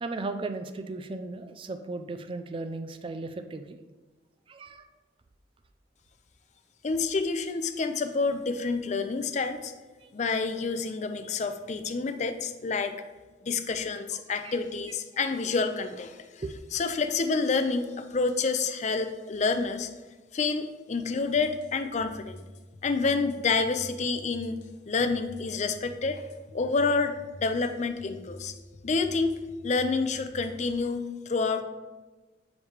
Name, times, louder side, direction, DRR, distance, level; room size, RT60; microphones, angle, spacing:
voice 1, 0.0-3.8 4.5-4.9 10.0-10.1 14.4-14.5 16.4-16.5, right 3 dB, 30° right, 8 dB, 0.4 m, -36 dB
voice 2, 6.8-9.7 10.1-12.9 13.4-16.2 16.7-19.9 20.3-22.4 22.8-24.6 24.9-26.2 26.5-28.5 28.8-29.3 29.6-31.6, left 4 dB, 40° left, 8 dB, 0.5 m, -28 dB
sound 1, 21.3-30.8, left 1 dB, 70° left, 0.8 m, -48 dB
7.2 x 3.3 x 4.8 m, 1.2 s
head